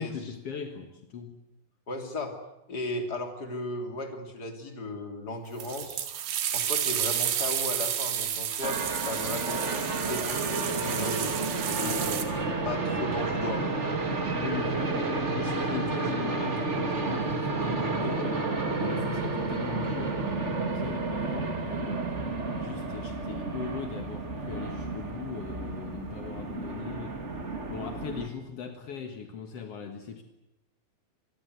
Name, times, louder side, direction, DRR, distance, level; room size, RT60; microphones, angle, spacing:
voice 1, 0.0-1.4 11.8-12.1 14.3-22.1 22.6-27.2 27.7-30.2, left 7 dB, 60° left, 6 dB, 1.6 m, -39 dB
voice 2, 1.9-2.4 2.7-6.0 6.5-11.4 12.0-12.2 12.6-13.7 14.6-15.3, left 1 dB, 25° left, 4 dB, 3.1 m, -36 dB
sound 1, 5.6-12.3, right 10 dB, 80° right, 4.2 m, -31 dB
sound 2, 8.6-28.3, right 3 dB, 30° right, 1.2 m, -31 dB
26.0 x 21.0 x 8.1 m, 0.91 s
omnidirectional pair, 5.0 m